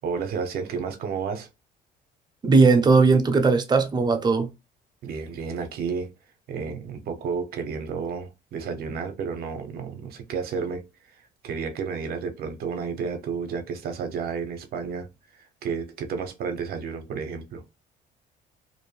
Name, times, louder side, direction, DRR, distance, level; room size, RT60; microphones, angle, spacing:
voice 1, 0.0-1.5 5.0-6.1 6.5-10.9 11.4-15.1 15.6-17.6, right 5 dB, 65° right, 0.6 m, -31 dB
voice 2, 2.4-4.5, right 4 dB, 25° right, 0.6 m, -18 dB
2.5 x 2.0 x 3.1 m
cardioid pair, 110°, 17 cm